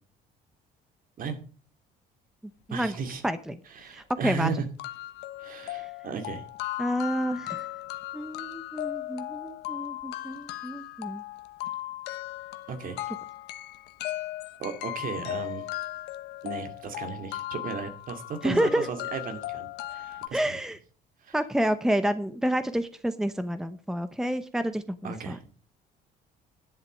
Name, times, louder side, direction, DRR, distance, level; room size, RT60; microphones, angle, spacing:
voice 1, 2.7-3.2 3.7-4.6 5.4-6.4 12.7-13.0 14.6-15.7 16.4-20.5 21.2-21.4 25.0-25.4, right 5 dB, 55° right, 7 dB, 2.3 m, -35 dB
voice 2, 3.2-3.6 3.9-4.5 5.7-5.9 6.8-7.7 8.1-11.2 18.4-18.9 20.3-20.8 21.3-25.4, equal, 5° right, 12 dB, 0.8 m, -29 dB
sound 1, 3.8-3.9 4.3-4.4 4.8-20.3, left 15 dB, 90° left, 1.1 m, -37 dB
11.0 x 7.8 x 6.4 m, 0.39 s
cardioid pair, 110°, 17 cm